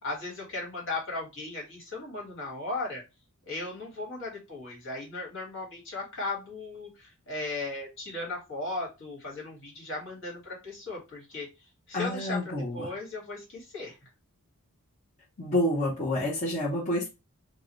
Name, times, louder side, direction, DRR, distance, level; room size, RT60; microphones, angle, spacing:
voice 1, 0.0-3.0 3.5-11.5 11.9-14.1, left 2 dB, 60° left, -1 dB, 2.1 m, -37 dB
voice 2, 11.9-12.9 15.4-17.1, left 1 dB, 35° left, -5 dB, 1.1 m, -28 dB
4.6 x 2.4 x 3.2 m, 0.25 s
head